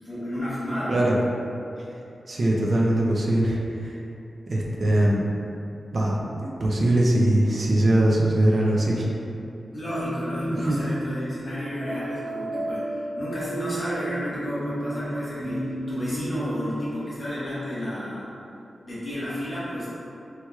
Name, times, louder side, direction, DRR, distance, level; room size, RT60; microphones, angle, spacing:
voice 1, 0.0-1.1 9.7-18.3 18.8-19.9, equal, 25° left, -11 dB, 1.3 m, -32 dB
voice 2, 2.3-4.0 4.5-5.2 5.9-9.0 10.7-10.8, right 1 dB, 45° right, -4 dB, 0.5 m, -21 dB
sound 1, 9.9-10.7 11.8-16.9, right 1 dB, 5° left, 1.4 m, -32 dB
4.4 x 3.0 x 2.3 m, 2.7 s
wide cardioid pair, 150°, 0 cm